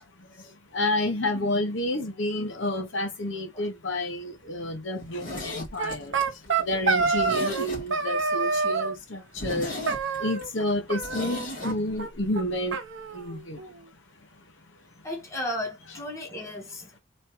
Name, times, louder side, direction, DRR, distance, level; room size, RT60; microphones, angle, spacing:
voice 1, 0.7-6.2 6.6-9.7 10.2-12.8 13.1-13.6, left 1 dB, 60° left, 1.0 m, -29 dB
Zipper (clothing), 5.0-8.2 8.5-8.6 9.0-9.1 9.4-11.8 12.0-12.1, left 1 dB, 40° left, 1.9 m, -37 dB
sound 1, 5.8-7.7 7.9-8.9 9.9-10.6 10.9-11.7 12.0-12.1 12.3-12.4 12.7-13.8, right 4 dB, 60° right, 0.8 m, -27 dB
voice 2, 15.0-17.0, left 1 dB, 15° left, 0.9 m, -34 dB
3.3 x 3.2 x 2.8 m
head